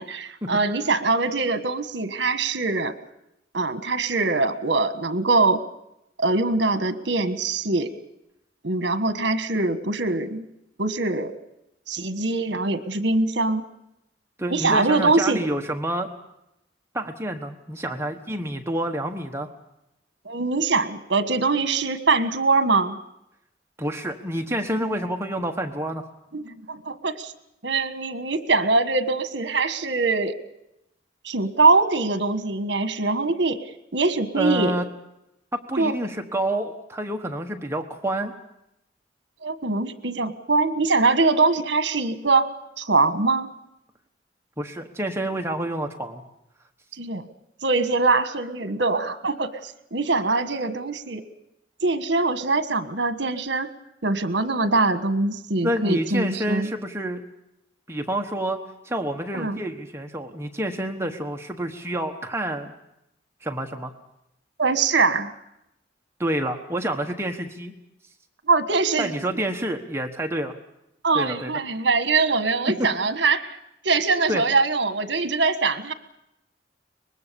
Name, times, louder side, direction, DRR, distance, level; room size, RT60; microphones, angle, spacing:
voice 1, 0.0-2.9 3.5-5.6 6.2-7.9 8.6-10.5 10.8-11.3 11.9-13.6 14.5-15.4 20.2-23.0 26.3-27.3 27.6-30.4 31.2-33.6 33.9-34.7 35.8-35.9 39.4-42.5 42.8-43.5 46.9-47.3 47.6-51.2 51.8-53.7 54.0-56.7 59.3-59.6 64.6-65.3 68.5-69.3 71.0-73.6 73.8-75.9, right 3 dB, 70° right, 10 dB, 1.5 m, -23 dB
voice 2, 14.4-16.1 16.9-19.5 23.8-26.0 34.3-34.8 35.7-38.3 44.6-46.2 55.6-57.2 57.9-62.7 63.4-63.9 66.2-67.7 69.0-70.5 71.1-71.5 72.8-72.9 74.3-74.4, right 1 dB, 15° right, 4 dB, 1.3 m, -28 dB
24.0 x 21.0 x 7.0 m, 0.84 s
head